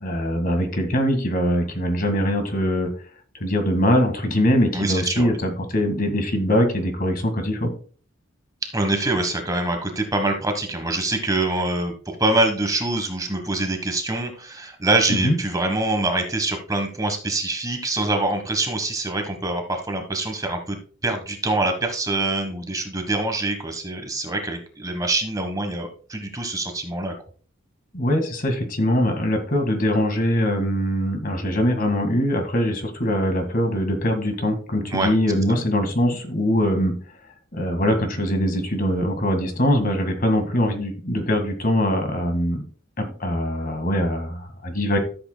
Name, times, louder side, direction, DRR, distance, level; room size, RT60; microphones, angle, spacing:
voice 1, 0.0-2.9 3.4-7.7 15.1-15.4 27.9-36.9 37.5-42.6 43.0-45.0, equal, 45° left, 6 dB, 1.8 m, -22 dB
voice 2, 4.7-5.3 8.7-20.8 21.0-27.1 34.9-35.1, right 2 dB, 20° right, 5 dB, 1.2 m, -24 dB
13.5 x 7.9 x 2.2 m, 0.41 s
head